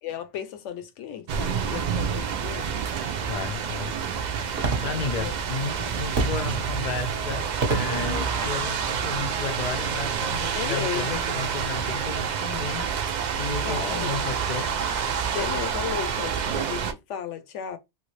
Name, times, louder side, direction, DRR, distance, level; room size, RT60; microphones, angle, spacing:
voice 1, 0.0-2.9 5.1-5.3 5.8-5.9 7.9-8.3 10.5-11.2 13.6-14.2 15.3-17.8, left 9 dB, 80° left, 0.9 m, -34 dB
sound 1, 1.3-16.9, right 7 dB, 65° right, 0.4 m, -28 dB
Fireworks, 3.1-11.5, right 3 dB, 35° right, 0.8 m, -33 dB
voice 2, 3.3-3.9 4.8-13.0 13.3-14.7, left 5 dB, 50° left, 0.5 m, -33 dB
3.1 x 2.4 x 3.1 m
omnidirectional pair, 1.2 m